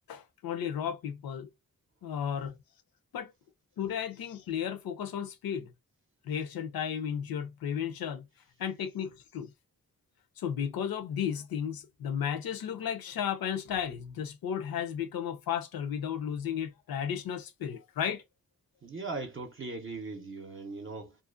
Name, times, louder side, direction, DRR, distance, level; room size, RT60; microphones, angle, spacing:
voice 1, 0.1-1.5 2.0-2.6 3.1-3.3 3.8-5.7 6.3-8.2 8.6-9.5 10.4-18.2, left 8 dB, 75° left, 0.6 m, -34 dB
voice 2, 18.8-21.2, right 3 dB, 35° right, 0.6 m, -39 dB
2.5 x 2.1 x 2.4 m
cardioid pair, 60°, 36 cm